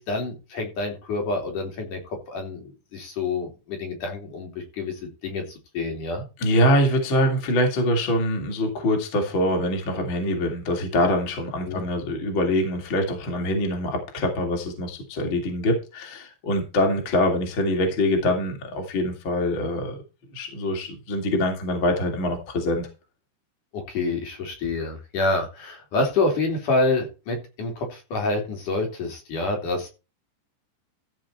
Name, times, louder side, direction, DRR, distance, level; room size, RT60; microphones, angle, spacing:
voice 1, 0.0-6.2 11.6-11.9 23.7-29.9, left 2 dB, 50° left, 2 dB, 4.4 m, -27 dB
voice 2, 6.4-20.0 20.3-22.9, left 1 dB, 30° left, 3 dB, 3.0 m, -24 dB
15.0 x 6.2 x 4.5 m, 0.30 s
omnidirectional pair, 5.1 m